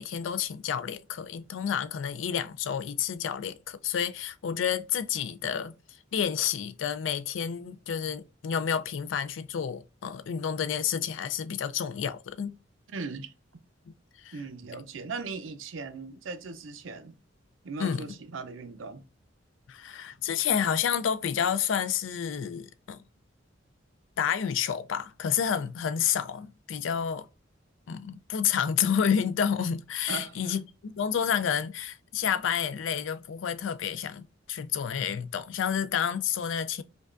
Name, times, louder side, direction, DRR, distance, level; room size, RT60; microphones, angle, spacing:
voice 1, 0.0-5.7 6.1-12.5 14.2-14.4 17.8-18.1 19.7-23.0 24.2-27.3 27.9-36.8, left 8 dB, 70° left, 0.4 m, -30 dB
voice 2, 12.9-13.3 14.3-17.2 17.6-19.0 30.1-30.6, right 4 dB, 80° right, 0.5 m, -38 dB
5.1 x 2.3 x 2.4 m
head